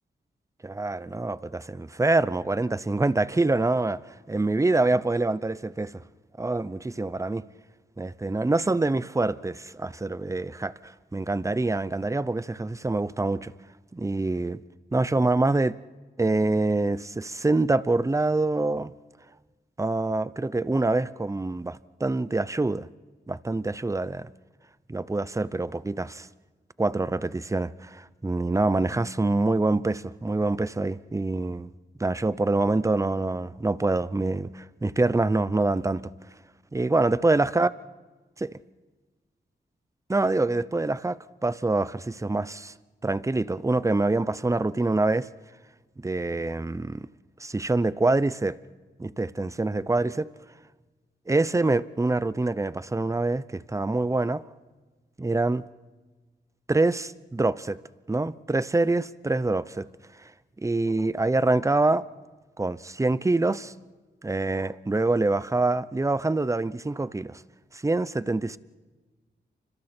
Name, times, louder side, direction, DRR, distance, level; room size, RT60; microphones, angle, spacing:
voice 1, 0.6-4.0 4.3-6.0 6.4-7.4 8.0-13.5 13.9-14.6 14.9-15.8 16.2-18.9 19.8-22.9 23.3-24.3 24.9-26.3 26.8-31.7 32.0-36.1 36.7-37.7 38.4-38.5 40.1-42.7 43.0-45.3 46.0-47.1 47.4-48.6 49.0-50.3 51.3-54.4 55.2-55.7 56.7-57.8 58.1-59.9 60.2-60.3 60.6-62.0 62.6-63.7 64.2-67.4 67.7-68.6, right 2 dB, 15° right, 0.7 m, -25 dB
29.5 x 25.5 x 4.4 m
wide cardioid pair, 80°, 18 cm